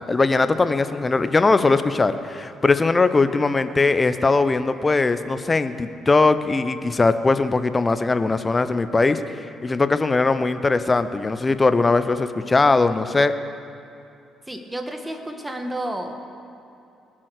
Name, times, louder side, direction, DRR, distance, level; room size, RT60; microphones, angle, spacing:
voice 1, 0.0-13.3, left 3 dB, 30° left, 11 dB, 0.8 m, -20 dB
voice 2, 14.5-16.1, right 1 dB, 15° right, 4 dB, 1.9 m, -31 dB
20.5 x 7.5 x 6.6 m, 2.6 s
hypercardioid pair, 45°, 0 cm